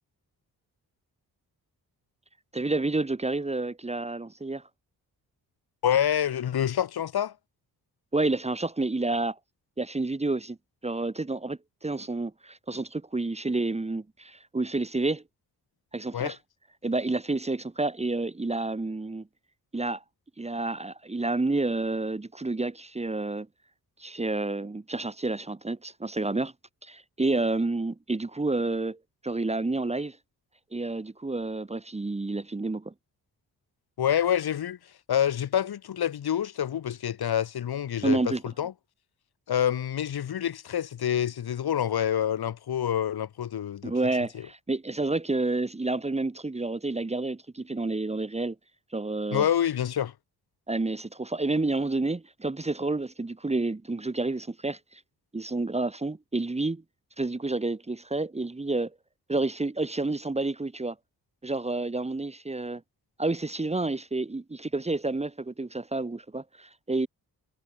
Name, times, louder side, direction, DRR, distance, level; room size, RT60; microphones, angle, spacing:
voice 1, 2.5-4.6 8.1-9.4 9.8-10.6 10.8-15.2 15.9-16.4 16.8-19.3 19.7-20.0 20.4-23.5 24.0-26.5 26.8-29.0 29.2-30.2 30.7-32.9 38.0-38.4 43.8-48.6 48.9-49.5 50.7-55.0 55.3-56.8 57.2-58.9 59.3-61.0 61.4-62.8 63.2-67.1, right 2 dB, 15° right, 1.8 m, -29 dB
voice 2, 5.8-7.3 16.1-16.3 34.0-34.8 35.1-38.7 39.5-43.9 44.3-44.5 49.3-50.1, left 10 dB, 75° left, 6.4 m, -27 dB
cardioid pair, 115°, 38 cm